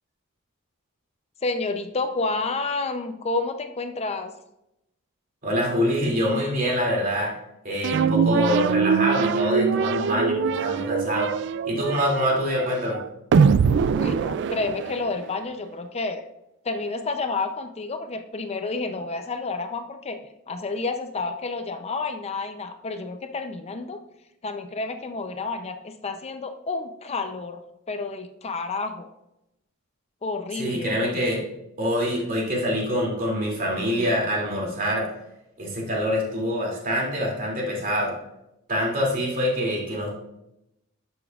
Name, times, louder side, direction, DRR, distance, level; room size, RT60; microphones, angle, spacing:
voice 1, 1.4-4.3 14.0-16.2 16.6-24.0 24.4-27.6 27.9-29.1 30.2-31.2, left 3 dB, 30° left, 7 dB, 0.5 m, -30 dB
voice 2, 5.4-7.3 7.6-11.3 11.7-13.0 30.6-31.4 31.8-35.1 35.6-38.1 38.7-40.1, equal, 40° right, -3 dB, 2.5 m, -25 dB
sound 1, 7.8-15.3, right 6 dB, 55° right, 0.3 m, -23 dB
11.0 x 7.0 x 2.4 m, 0.86 s
head